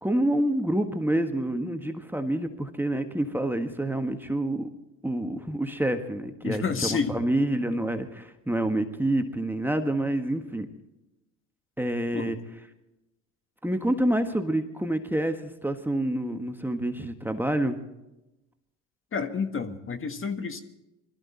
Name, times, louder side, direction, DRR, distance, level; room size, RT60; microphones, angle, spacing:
voice 1, 0.0-4.7 5.0-10.7 11.8-12.4 13.6-17.8, right 1 dB, 5° right, 6 dB, 1.5 m, -27 dB
voice 2, 6.4-7.2 12.1-12.3 19.1-20.6, left 5 dB, 30° left, 8 dB, 1.7 m, -29 dB
21.5 x 14.0 x 4.3 m, 0.93 s
hypercardioid pair, 75°, 40 cm